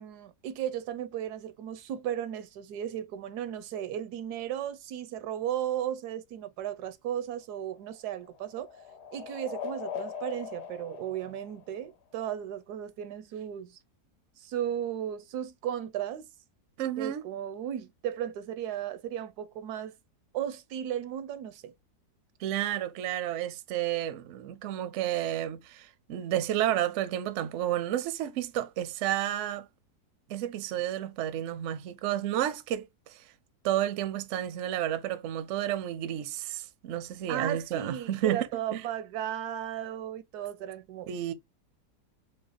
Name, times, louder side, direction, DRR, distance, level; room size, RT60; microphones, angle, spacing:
voice 1, 0.0-8.7 9.1-13.8 14.4-16.3 17.0-19.9 20.3-21.7 37.3-41.1, right 10 dB, 80° right, 1.1 m, -35 dB
sound 1, 7.4-12.2, left 7 dB, 85° left, 1.3 m, -41 dB
voice 2, 16.8-17.2 22.4-29.7 30.3-33.3 33.6-38.5 38.7-38.8 41.1-41.3, right 12 dB, 65° right, 0.8 m, -31 dB
4.0 x 3.4 x 2.5 m
omnidirectional pair, 1.7 m